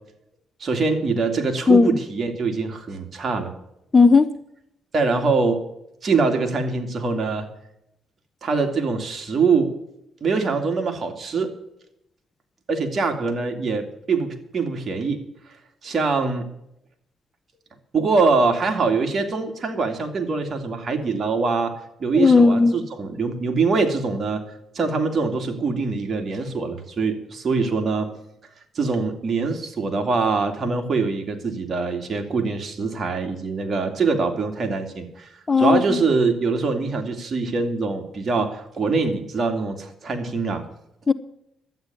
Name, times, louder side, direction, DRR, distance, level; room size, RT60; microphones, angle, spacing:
voice 1, 0.6-3.5 4.9-5.6 6.0-7.5 8.4-9.7 10.2-11.5 12.7-15.2 15.8-16.5 17.9-21.7 22.0-24.4 24.7-28.1 28.7-35.3 35.6-40.6, right 4 dB, 45° right, 2.5 m, -23 dB
voice 2, 1.7-2.0 3.9-4.3 22.1-22.8 35.5-36.0 41.1-41.2, left 4 dB, 25° left, 0.7 m, -15 dB
12.0 x 9.2 x 7.0 m
cardioid pair, 90°, 0 cm